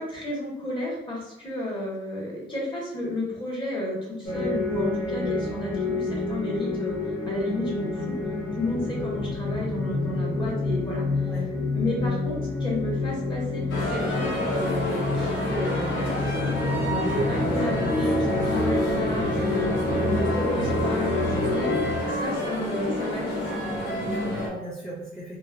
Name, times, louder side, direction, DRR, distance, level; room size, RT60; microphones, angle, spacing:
voice 1, 0.0-7.0 7.2-8.1 8.5-11.0 11.7-16.1 16.4-21.7 22.2-23.5, left 1 dB, 25° left, -4 dB, 1.2 m, -32 dB
sound 1, 4.2-22.0, left 2 dB, 55° left, 1.1 m, -28 dB
sound 2, 13.7-24.5, left 1 dB, 80° left, 0.9 m, -29 dB
voice 2, 21.9-22.5 23.8-25.4, equal, ahead, -6 dB, 0.5 m, -38 dB
3.0 x 2.4 x 2.4 m, 0.87 s
cardioid pair, 90°, 20 cm